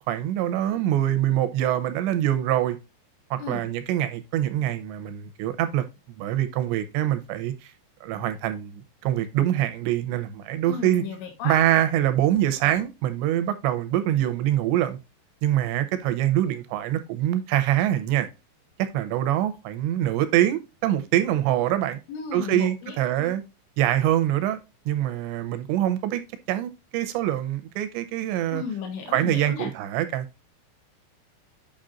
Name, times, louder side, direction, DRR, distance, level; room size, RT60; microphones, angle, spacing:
voice 1, 0.1-2.8 3.3-5.8 6.2-7.7 8.0-11.0 11.4-15.0 15.4-18.3 18.8-22.0 22.3-23.4 23.8-24.6 24.9-26.2 26.5-28.6 29.1-30.3, right 12 dB, 80° right, 2.7 m, -24 dB
voice 2, 10.7-11.6 22.1-23.3 28.5-29.7, left 6 dB, 70° left, 3.6 m, -34 dB
8.7 x 6.0 x 2.5 m
omnidirectional pair, 5.6 m